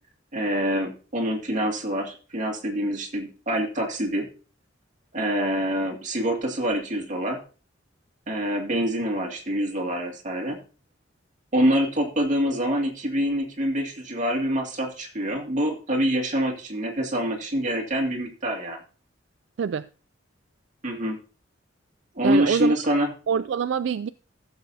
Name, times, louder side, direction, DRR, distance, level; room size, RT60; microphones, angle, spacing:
voice 1, 0.3-4.3 5.1-7.4 8.3-10.6 11.5-18.8 20.8-21.2 22.1-23.1, equal, 40° right, 2.3 m, -25 dB
voice 2, 19.6-19.9 22.2-22.7 23.3-24.1, right 7 dB, 70° right, 0.3 m, -25 dB
14.5 x 7.2 x 2.7 m
head